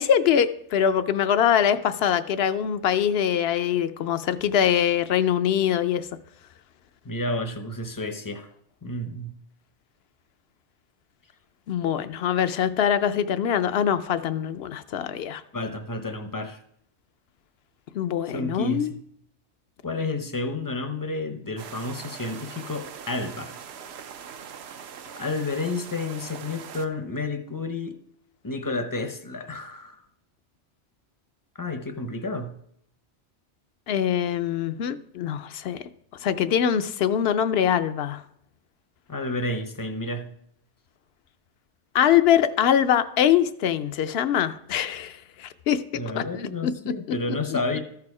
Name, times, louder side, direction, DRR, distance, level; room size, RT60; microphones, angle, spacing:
voice 1, 0.0-6.1 11.7-15.4 17.9-18.9 33.9-35.8 36.2-38.2 41.9-45.8 46.1-46.7 47.5-47.6, left 9 dB, 70° left, 0.7 m, -23 dB
voice 2, 7.0-8.5 8.8-9.4 15.5-16.6 18.3-19.0 19.8-23.5 25.1-28.0 28.4-30.0 31.6-32.5 39.1-40.3 45.9-47.8, left 2 dB, 25° left, 0.5 m, -31 dB
sound 1, 21.6-26.9, right 7 dB, 70° right, 0.9 m, -41 dB
14.0 x 4.8 x 4.8 m
omnidirectional pair, 1.2 m